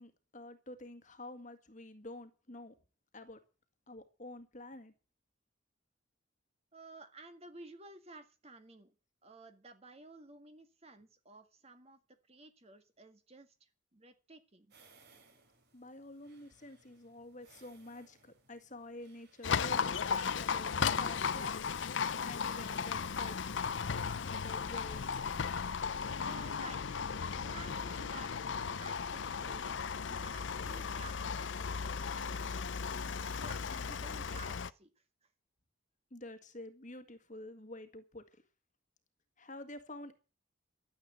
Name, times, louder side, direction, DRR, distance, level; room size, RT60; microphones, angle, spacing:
voice 1, 0.0-2.8 3.1-3.4 3.9-4.9 15.7-21.7 22.2-23.4 24.3-25.2 36.1-38.4 39.4-40.2, left 2 dB, 40° left, 8 dB, 1.8 m, -49 dB
voice 2, 6.7-8.9 9.2-12.0 12.3-14.7 26.2-26.9 27.3-29.8 30.1-32.7 33.2-34.9, right 3 dB, 30° right, 8 dB, 1.7 m, -54 dB
sound 1, 14.7-34.6, right 4 dB, 55° right, 3.4 m, -67 dB
Livestock farm animals working animals, 19.4-34.7, left 6 dB, 65° left, 0.6 m, -36 dB
13.0 x 8.0 x 8.0 m, 0.33 s
head